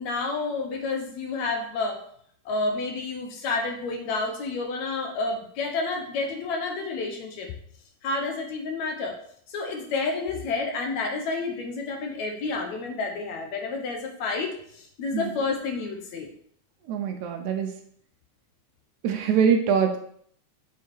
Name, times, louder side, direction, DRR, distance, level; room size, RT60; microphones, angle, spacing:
voice 1, 0.0-2.0 2.5-7.5 8.0-9.2 9.5-16.3, left 3 dB, 70° left, 3 dB, 2.0 m, -30 dB
voice 2, 16.9-17.8 19.0-20.0, right 7 dB, 75° right, 5 dB, 2.0 m, -23 dB
7.3 x 4.7 x 4.6 m, 0.64 s
omnidirectional pair, 3.6 m